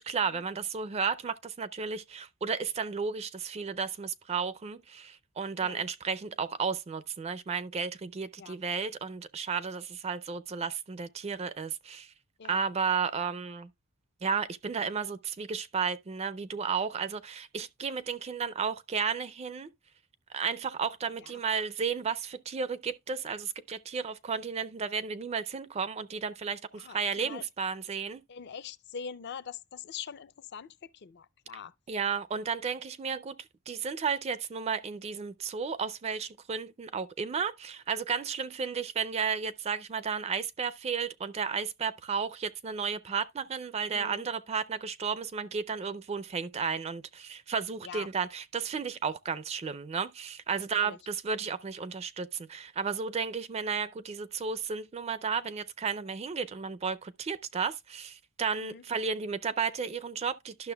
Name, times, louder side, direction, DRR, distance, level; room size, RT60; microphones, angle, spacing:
voice 1, 0.0-12.1 12.5-13.7 14.2-19.7 20.3-28.2 31.9-33.4 33.7-60.7, right 6 dB, 30° right, 0.4 m, -33 dB
voice 2, 26.8-27.5 28.3-31.7 43.9-44.2 47.8-48.1 50.6-51.0 58.6-58.8, left 7 dB, 50° left, 0.5 m, -43 dB
11.5 x 6.3 x 2.2 m
head